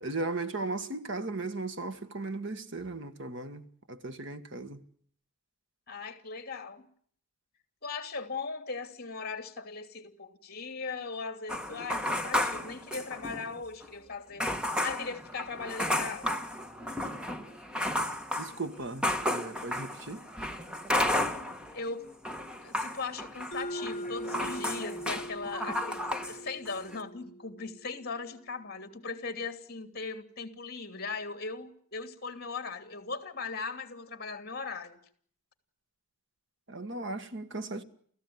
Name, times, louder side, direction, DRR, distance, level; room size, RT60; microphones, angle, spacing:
voice 1, 0.0-4.8 18.4-20.2 36.7-37.8, right 3 dB, 55° right, 1.6 m, -37 dB
voice 2, 5.9-6.9 7.8-14.5 14.8-16.4 21.7-22.1 22.6-35.0, left 4 dB, 45° left, 2.9 m, -39 dB
sound 1, 11.5-13.5 13.8-13.9 14.4-21.8 22.1-26.4 26.7-27.0, left 1 dB, 5° right, 1.4 m, -33 dB
Mallet percussion, 23.5-28.1, equal, 30° left, 7.6 m, -41 dB
30.0 x 15.5 x 9.6 m
head